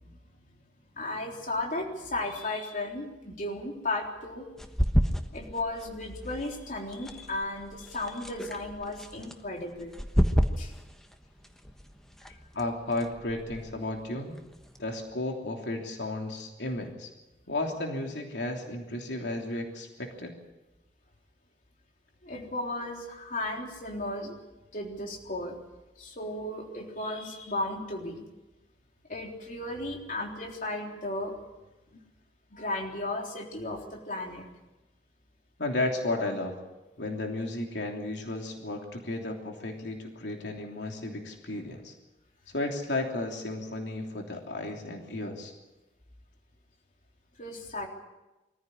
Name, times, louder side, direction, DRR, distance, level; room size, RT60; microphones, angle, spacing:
voice 1, 0.9-4.5 5.3-9.9 10.6-10.7 22.2-24.4 24.7-25.6 26.0-28.2 29.1-31.3 32.5-34.5 47.4-47.9, left 2 dB, 50° left, 0 dB, 3.7 m, -35 dB
sound 1, 4.6-14.9, equal, 5° left, 1.3 m, -32 dB
voice 2, 12.5-14.4 14.8-17.1 17.5-20.3 35.6-36.5 37.0-41.9 42.5-45.5, left 2 dB, 80° left, 1 dB, 3.1 m, -33 dB
23.5 x 15.0 x 10.0 m, 1.1 s
head